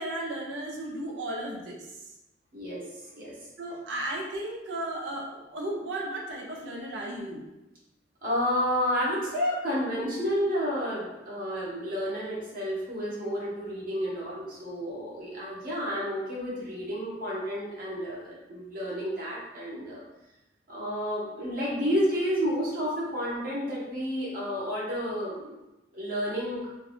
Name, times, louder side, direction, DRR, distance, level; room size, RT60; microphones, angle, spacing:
voice 1, 0.0-1.9 3.6-7.5, right 1 dB, 90° right, -1 dB, 0.7 m, -35 dB
voice 2, 2.5-2.8 3.1-3.3 8.2-20.0 20.7-25.5 25.9-26.6, equal, 50° right, -6 dB, 1.1 m, -30 dB
3.6 x 2.4 x 3.1 m, 0.97 s
head